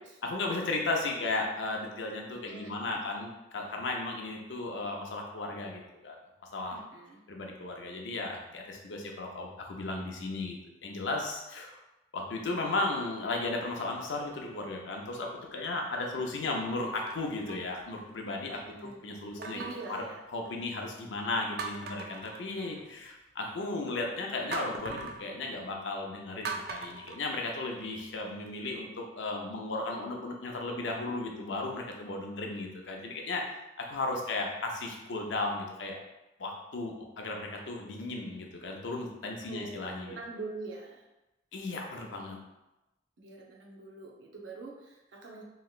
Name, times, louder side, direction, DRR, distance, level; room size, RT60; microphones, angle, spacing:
voice 1, 0.2-6.2 6.5-6.8 7.3-10.6 10.8-11.8 12.1-19.6 19.9-20.0 20.3-36.0 36.4-40.2 41.5-42.4, left 2 dB, 80° left, 1 dB, 0.6 m, -35 dB
voice 2, 2.5-3.1 6.7-7.2 18.5-19.0 19.4-20.2 22.5-22.8 39.5-41.1 43.2-45.4, right 3 dB, 90° right, -1 dB, 0.7 m, -44 dB
sound 1, 13.9-14.4 15.0-15.2 16.8-18.3 19.4-20.8 21.2-21.3 21.6-23.1 24.5-25.3 26.4-28.0 28.5-28.6, right 4 dB, 55° right, 0.3 m, -41 dB
3.2 x 2.9 x 2.4 m, 0.97 s
head